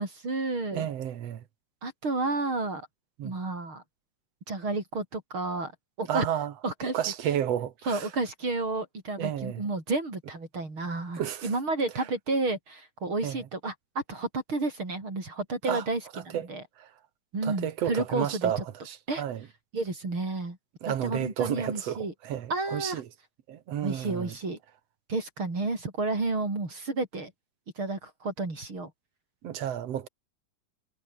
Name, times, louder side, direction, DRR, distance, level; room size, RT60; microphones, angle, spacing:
voice 1, 0.0-0.9 1.8-2.9 3.2-3.8 4.5-5.7 6.0-6.2 6.6-7.0 7.9-16.6 17.3-18.6 19.1-19.2 19.7-20.6 20.9-22.1 22.5-23.0 23.8-24.6 25.1-27.3 27.8-28.9, right 3 dB, 40° right, 6.4 m, -31 dB
voice 2, 0.7-1.4 3.2-3.3 6.1-6.5 6.9-8.1 9.2-9.6 11.2-11.5 13.2-13.4 15.7-15.8 16.3-16.5 16.8-16.9 17.4-19.4 20.8-23.1 23.5-24.3 29.4-30.1, right 10 dB, 60° right, 2.3 m, -31 dB
omnidirectional pair, 3.7 m